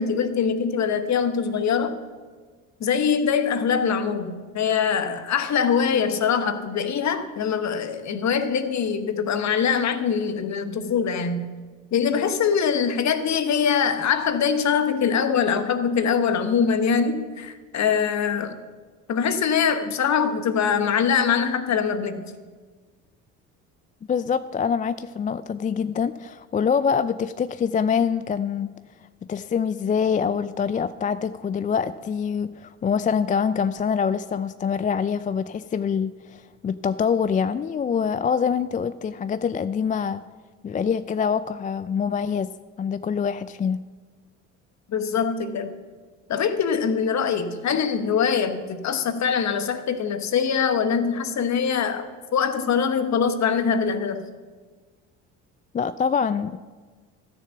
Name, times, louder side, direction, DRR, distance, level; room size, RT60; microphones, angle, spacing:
voice 1, 0.0-2.0 2.8-11.5 11.9-18.6 19.1-22.2 44.9-45.7 46.3-54.3, left 6 dB, 50° left, 9 dB, 1.3 m, -23 dB
voice 2, 24.1-28.7 29.3-40.2 40.6-42.5 42.8-43.9 55.7-56.6, left 6 dB, 25° left, 13 dB, 0.4 m, -25 dB
13.5 x 6.8 x 7.0 m, 1.4 s
hypercardioid pair, 60°, 36 cm